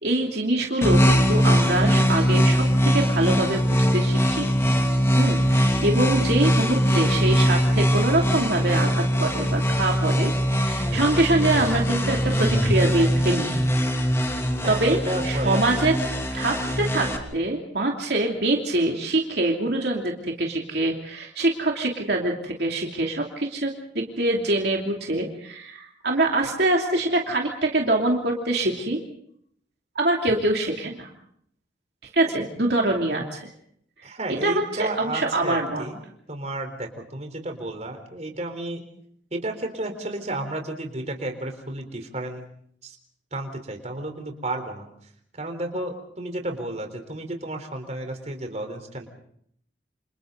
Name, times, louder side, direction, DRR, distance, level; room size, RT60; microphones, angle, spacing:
voice 1, 0.0-2.6 2.9-4.5 5.2-13.6 14.7-15.0 15.2-15.9 16.3-29.0 29.9-31.1 32.1-33.5 34.4-35.8, right 2 dB, 60° right, 0 dB, 2.9 m, -24 dB
sound 1, 0.8-17.2, equal, 15° left, 2.8 m, -21 dB
voice 2, 14.6-15.9 34.0-36.0 36.3-38.8 39.3-42.5 42.8-43.0 43.3-44.9 45.3-49.1, right 1 dB, 40° right, 5 dB, 4.0 m, -32 dB
28.5 x 28.0 x 4.0 m, 0.68 s
head